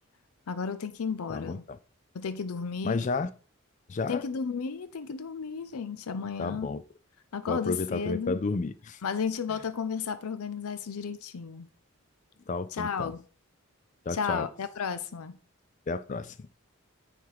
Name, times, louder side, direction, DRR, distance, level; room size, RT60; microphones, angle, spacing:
voice 1, 0.5-1.6 2.1-3.1 4.1-6.8 7.3-8.4 9.0-11.7 12.7-13.2 14.1-15.4, left 6 dB, 85° left, 0.6 m, -33 dB
voice 2, 1.3-1.8 2.8-3.3 3.9-4.2 6.4-6.8 7.5-9.0 12.5-13.1 14.1-14.5 15.9-16.5, left 3 dB, 35° left, 0.4 m, -32 dB
9.3 x 3.5 x 4.8 m
head